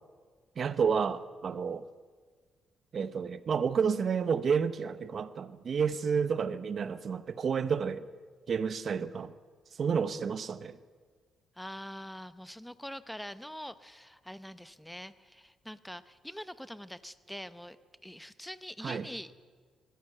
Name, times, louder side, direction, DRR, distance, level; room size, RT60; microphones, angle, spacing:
voice 1, 0.6-1.8 2.9-8.0 8.5-9.3 9.8-10.8 18.8-19.0, right 6 dB, 50° right, 14 dB, 1.0 m, -30 dB
voice 2, 11.6-17.8 18.0-19.3, equal, 5° left, 14 dB, 0.9 m, -44 dB
21.0 x 15.5 x 8.0 m, 1.6 s
cardioid pair, 90°, 0 cm